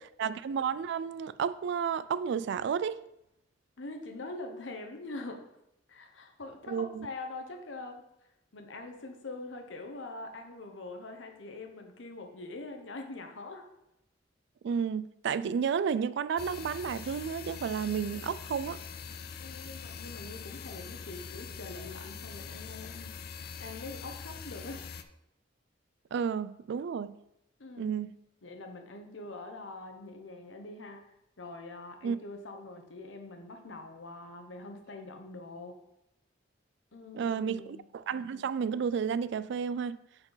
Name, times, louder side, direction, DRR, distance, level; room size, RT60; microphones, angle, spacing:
voice 1, 0.2-3.0 6.7-7.1 14.6-18.8 26.1-27.2 27.8-28.1 32.0-32.2 37.1-37.6 37.9-40.0, right 7 dB, 65° right, 0.3 m, -31 dB
voice 2, 3.8-5.4 5.9-8.0 8.5-13.7 19.4-24.8 27.6-27.9 28.4-31.0 31.4-35.7 36.9-37.8, left 2 dB, 75° left, 1.0 m, -44 dB
sound 1, 16.4-25.0, left 6 dB, 55° left, 0.4 m, -43 dB
8.8 x 4.4 x 4.0 m
head